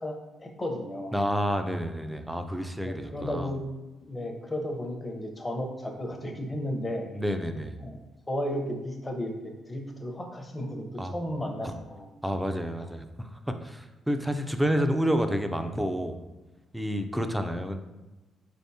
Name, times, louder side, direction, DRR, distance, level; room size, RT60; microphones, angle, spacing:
voice 1, 0.0-1.2 2.8-3.6 4.0-7.1 7.8-8.0 8.3-12.1 12.8-12.9, left 1 dB, 20° left, 3 dB, 0.7 m, -34 dB
voice 2, 1.1-3.5 7.1-7.8 11.0-11.1 12.2-16.2 16.7-17.8, equal, 5° right, 7 dB, 0.4 m, -29 dB
4.0 x 3.5 x 2.7 m, 1.1 s
cardioid pair, 90°, 0 cm